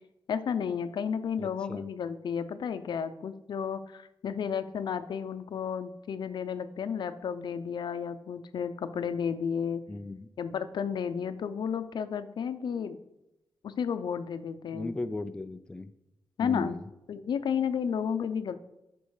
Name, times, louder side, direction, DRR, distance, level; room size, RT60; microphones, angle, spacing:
voice 1, 0.3-9.8 10.4-13.0 13.6-14.9 16.4-16.8 17.1-18.6, left 7 dB, 65° left, 11 dB, 0.6 m, -32 dB
voice 2, 1.4-1.9 9.9-10.3 14.7-15.9 16.4-16.8, left 2 dB, 10° left, 9 dB, 0.4 m, -37 dB
12.5 x 6.1 x 4.8 m, 0.92 s
wide cardioid pair, 175°, 8 cm